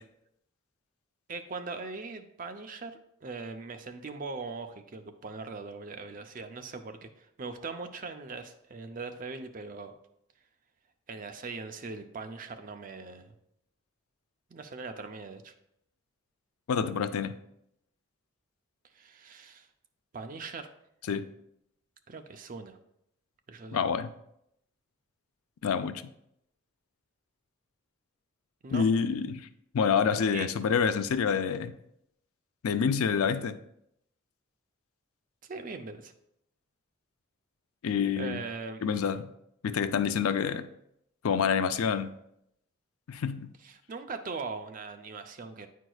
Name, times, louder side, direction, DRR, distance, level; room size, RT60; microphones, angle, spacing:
voice 1, 1.3-2.9 3.2-9.9 11.1-13.3 14.5-15.5 18.9-19.7 20.1-20.7 22.1-22.8 23.5-23.8 28.6-28.8 30.3-30.5 35.5-36.1 38.2-38.8 43.6-45.7, right 4 dB, 40° right, 0.4 m, -40 dB
voice 2, 16.7-17.4 21.1-21.3 23.7-24.1 25.6-26.0 28.7-29.5 29.7-31.7 32.6-33.6 37.8-38.4 38.8-39.3 39.6-40.7 41.2-42.1 43.1-43.5, left 6 dB, 85° left, 0.4 m, -27 dB
8.8 x 4.6 x 2.3 m
head